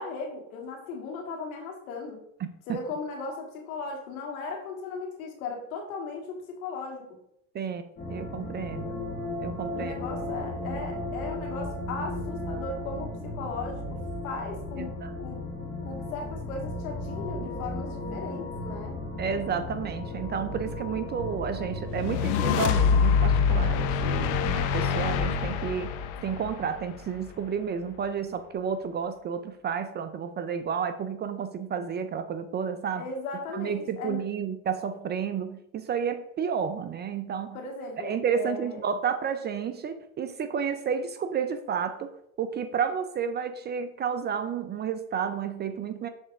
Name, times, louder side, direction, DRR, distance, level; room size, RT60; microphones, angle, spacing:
voice 1, 0.0-2.2 2.7-7.0 9.7-15.4 15.9-18.9 33.0-34.2 37.5-38.8, left 4 dB, 80° left, 1 dB, 1.8 m, -37 dB
sound 1, 8.0-22.5, left 1 dB, 25° left, 1.5 m, -35 dB
voice 2, 8.1-9.0 9.4-9.9 14.8-15.1 19.2-25.9 26.2-33.0 33.5-37.6 38.0-42.1 42.4-46.1, right 7 dB, 25° right, 10 dB, 0.3 m, -31 dB
sound 2, 21.9-27.3, left 6 dB, 60° left, 0.8 m, -25 dB
6.5 x 3.3 x 4.7 m, 0.76 s
supercardioid pair, 100°, 41 cm